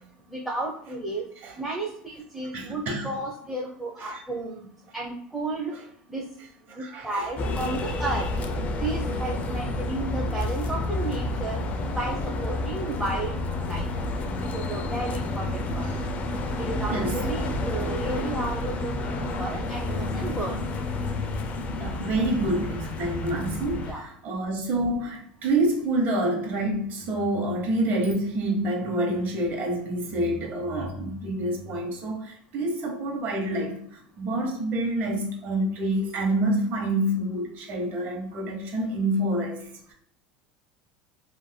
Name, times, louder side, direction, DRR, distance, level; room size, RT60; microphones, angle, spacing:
voice 1, 0.3-1.2 1.6-4.6 4.9-5.7 6.1-6.2 6.7-8.3 8.8-11.6 11.9-12.2 12.4-13.3 13.7-13.8 14.5-15.9 16.6-20.6 23.8-24.0, right 2 dB, 5° right, 0.6 m, -33 dB
voice 2, 2.5-3.1 4.0-4.2 6.8-7.2 16.9-17.2 21.7-39.6, right 1 dB, 50° right, 1.0 m, -27 dB
sound 1, 7.4-23.9, left 2 dB, 35° left, 0.4 m, -30 dB
3.2 x 2.6 x 2.2 m
supercardioid pair, 105°, 4 cm